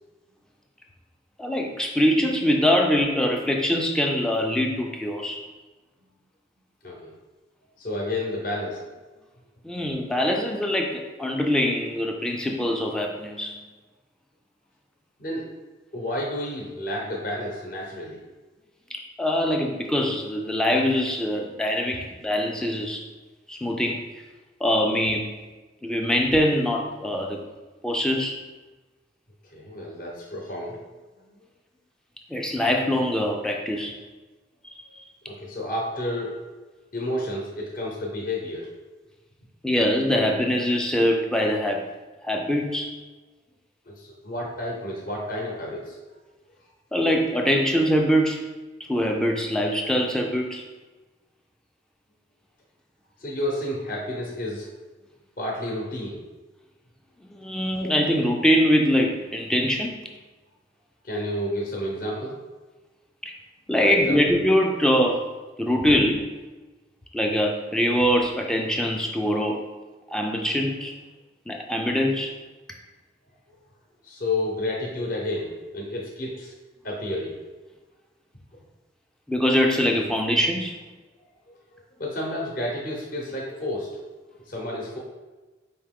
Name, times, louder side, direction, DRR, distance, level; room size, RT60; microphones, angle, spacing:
voice 1, 1.4-5.4 9.6-13.6 18.9-23.1 23.5-24.1 24.6-25.3 25.8-27.4 27.8-28.4 32.3-34.0 34.8-35.0 39.6-41.8 42.2-43.0 46.9-48.4 48.8-50.6 57.4-60.0 63.2-63.3 63.7-65.3 65.6-66.3 67.1-69.6 70.1-70.9 71.5-72.3 79.3-80.7, equal, 5° left, 1 dB, 0.3 m, -23 dB
voice 2, 7.8-8.8 15.2-15.5 15.9-18.2 29.5-30.8 35.3-36.4 36.9-38.7 43.9-46.0 53.2-54.7 55.4-56.2 61.0-62.4 63.8-64.2 74.0-76.5 76.8-77.4 82.0-84.0 84.5-85.0, left 1 dB, 50° left, -2 dB, 0.7 m, -30 dB
4.7 x 2.9 x 3.6 m, 1.2 s
head